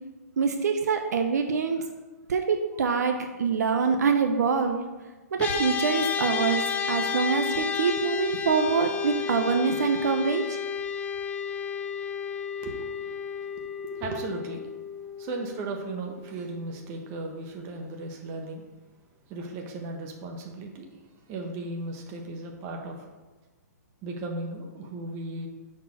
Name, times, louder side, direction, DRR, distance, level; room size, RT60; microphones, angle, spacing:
voice 1, 0.4-1.8 2.3-4.8 5.3-10.6, right 5 dB, 70° right, 5 dB, 0.7 m, -25 dB
sound 1, 5.4-16.9, left 6 dB, 15° left, 0.4 m, -32 dB
voice 2, 12.6-13.2 13.5-14.7 15.2-18.6 19.3-20.9 21.3-23.1 24.0-25.5, right 2 dB, 25° right, 2 dB, 1.1 m, -36 dB
5.7 x 4.4 x 6.0 m, 1.2 s
hypercardioid pair, 145°, 9 cm